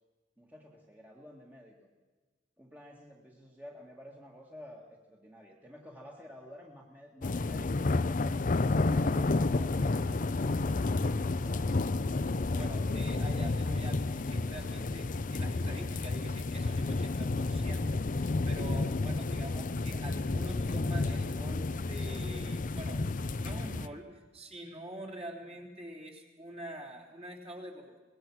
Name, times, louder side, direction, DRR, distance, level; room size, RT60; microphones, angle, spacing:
voice 1, 0.4-1.9 2.6-8.3, left 1 dB, 10° right, -1 dB, 1.9 m, -52 dB
sound 1, 7.2-23.9, left 3 dB, 45° left, 0.6 m, -31 dB
voice 2, 12.5-17.9 18.1-23.1 23.4-28.0, right 1 dB, 35° right, 0 dB, 3.5 m, -46 dB
24.0 x 20.0 x 6.2 m, 1.3 s
head